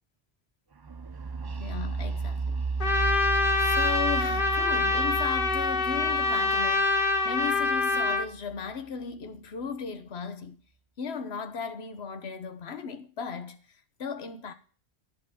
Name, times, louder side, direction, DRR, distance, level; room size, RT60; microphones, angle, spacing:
sound 1, 0.8-8.6, right 4 dB, 35° right, 0.3 m, -34 dB
voice 1, 1.4-2.6 3.6-10.6 11.0-14.5, left 6 dB, 75° left, 1.3 m, -36 dB
Trumpet, 2.8-8.3, left 3 dB, 55° left, 1.1 m, -25 dB
10.5 x 4.6 x 7.3 m
omnidirectional pair, 1.1 m